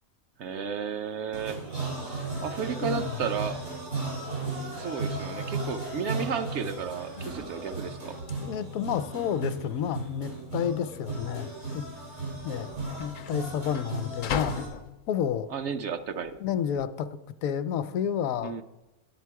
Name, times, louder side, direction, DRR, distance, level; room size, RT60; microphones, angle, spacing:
voice 1, 0.4-1.6 2.4-3.6 4.8-8.2 15.5-16.4 18.4-18.6, right 6 dB, 65° right, 9 dB, 0.8 m, -33 dB
sound 1, 1.3-14.7, right 3 dB, 85° right, 5.2 m, -35 dB
voice 2, 2.8-3.2 8.4-11.8 12.4-12.7 13.0-14.6 15.1-15.5 16.1-17.1 17.4-18.5, left 8 dB, 80° left, 13 dB, 1.0 m, -30 dB
sound 2, 6.8-16.9, left 7 dB, 65° left, 0.5 m, -41 dB
10.5 x 8.9 x 4.7 m, 1.0 s
omnidirectional pair, 1.4 m